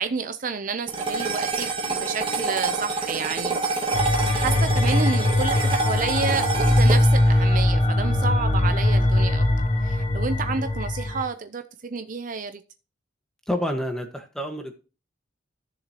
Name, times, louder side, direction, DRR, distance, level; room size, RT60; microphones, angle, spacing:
voice 1, 0.0-9.4 9.8-12.6, right 5 dB, 40° right, 0.6 m, -30 dB
sound 1, 0.9-9.4, right 4 dB, 25° right, 1.7 m, -28 dB
sound 2, 3.9-11.2, left 1 dB, 35° left, 1.0 m, -21 dB
voice 2, 13.5-14.8, equal, 5° left, 1.4 m, -28 dB
15.0 x 6.8 x 2.9 m
head